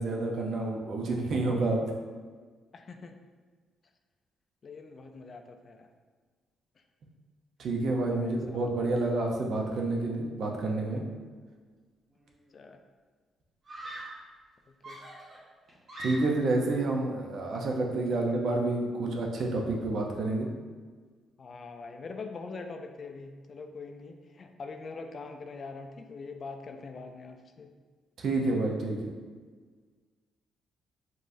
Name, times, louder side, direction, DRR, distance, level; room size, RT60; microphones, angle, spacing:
voice 1, 0.0-1.9 7.6-11.0 16.0-20.5 28.2-29.0, right 2 dB, 65° right, 1 dB, 0.7 m, -29 dB
voice 2, 2.7-3.2 4.6-5.9 8.1-8.9 12.5-12.8 14.7-15.1 18.1-18.4 21.4-27.7, left 4 dB, 45° left, 5 dB, 0.4 m, -43 dB
Screaming, 12.1-12.6 13.6-14.3 14.8-16.6, right 1 dB, 45° right, 1.1 m, -43 dB
5.4 x 3.1 x 2.6 m, 1.5 s
cardioid pair, 90°, 0 cm